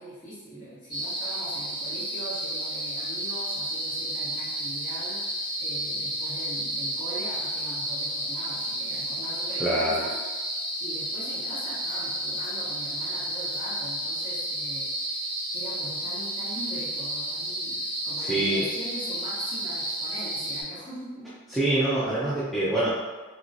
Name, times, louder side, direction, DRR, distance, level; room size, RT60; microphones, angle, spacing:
voice 1, 0.0-10.5 10.8-15.2 15.5-21.3, right 1 dB, 40° left, -9 dB, 1.2 m, -42 dB
sound 1, 0.9-20.6, right 1 dB, 20° left, 1.3 m, -31 dB
voice 2, 9.6-10.0 18.2-18.6 21.5-22.9, right 1 dB, ahead, -11 dB, 0.4 m, -25 dB
3.0 x 2.9 x 2.5 m, 1.3 s
head